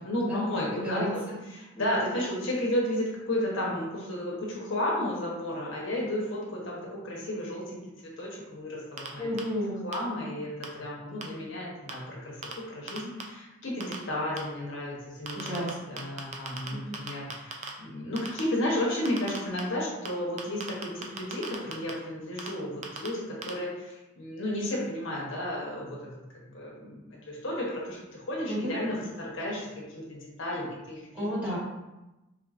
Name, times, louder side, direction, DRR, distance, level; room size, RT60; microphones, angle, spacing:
voice 1, 0.0-9.3 9.8-12.4 12.7-15.6 15.9-26.1 26.5-31.3, left 1 dB, 65° left, -4 dB, 1.0 m, -33 dB
voice 2, 0.7-1.1 1.7-1.9 9.2-9.8 15.3-15.7 16.7-17.0 28.5-28.7 31.1-31.6, equal, 5° right, -10 dB, 1.3 m, -32 dB
sound 1, 9.0-9.1 9.4-9.5 9.9-10.0 10.6-10.7 11.2-11.3 11.9-12.0 12.4-12.5 12.9-13.2 13.8-14.0 14.4-14.5 15.3-15.7 16.0-16.7 16.9-17.7 18.2-18.4 19.0-19.6 20.0-20.1 20.4-21.9 22.4-22.5 22.8-23.1 23.4-23.5, right 4 dB, 30° right, 0.4 m, -36 dB
4.5 x 3.3 x 2.5 m, 1.0 s
head